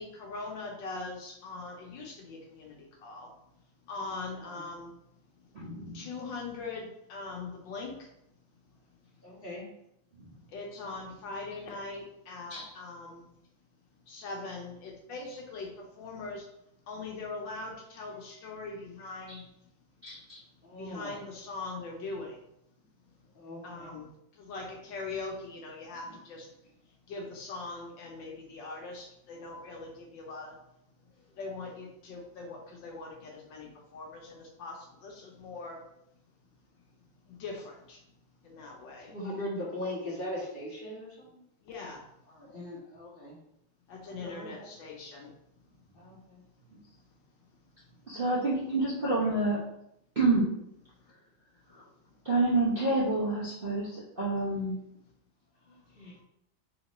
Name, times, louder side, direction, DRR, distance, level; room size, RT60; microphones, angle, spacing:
voice 1, 0.0-3.3 3.9-4.9 5.9-8.1 10.5-13.3 14.1-16.5 16.9-19.5 20.8-22.4 23.6-24.1 24.4-26.5 27.1-30.5 31.4-35.8 37.3-38.0 38.4-39.1 41.6-42.0 43.9-45.3, left 3 dB, 75° left, 1 dB, 1.4 m, -41 dB
voice 2, 5.5-6.0 12.5-12.7 20.0-20.4 48.1-49.6 50.2-50.5 52.2-54.8, right 2 dB, 45° right, -8 dB, 0.7 m, -28 dB
voice 3, 9.2-9.7 20.6-21.1 23.3-23.9 39.0-41.4 42.3-43.4 44.1-44.7 45.9-46.4 55.7-56.1, left 1 dB, 35° left, -5 dB, 1.2 m, -40 dB
4.0 x 2.9 x 4.1 m, 0.78 s
omnidirectional pair, 2.2 m